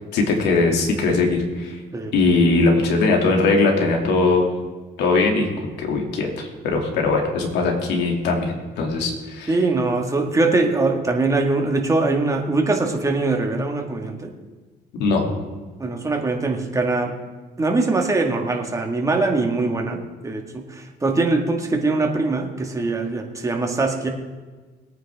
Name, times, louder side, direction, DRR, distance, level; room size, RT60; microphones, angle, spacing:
voice 1, 0.1-1.8 2.1-4.5 5.0-5.5 5.8-9.5 15.0-15.2, left 3 dB, 85° left, 1 dB, 2.7 m, -20 dB
voice 2, 9.5-14.3 15.8-17.1 17.6-24.1, right 3 dB, 20° right, 2 dB, 2.0 m, -22 dB
21.5 x 9.4 x 3.7 m, 1.3 s
cardioid pair, 110°, 17 cm